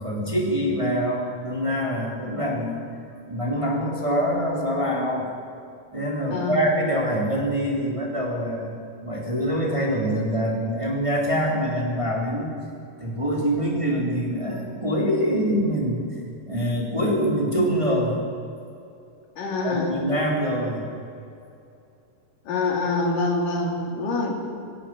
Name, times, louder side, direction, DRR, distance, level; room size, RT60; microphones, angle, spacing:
voice 1, 0.0-2.8 3.3-5.3 5.9-8.7 9.0-12.5 13.0-16.0 16.5-18.2 19.6-20.9, equal, 10° right, -2 dB, 3.3 m, -24 dB
voice 2, 19.4-19.9 22.5-24.4, left 3 dB, 80° left, 1 dB, 4.5 m, -25 dB
20.5 x 17.5 x 7.7 m, 2.5 s
omnidirectional pair, 3.7 m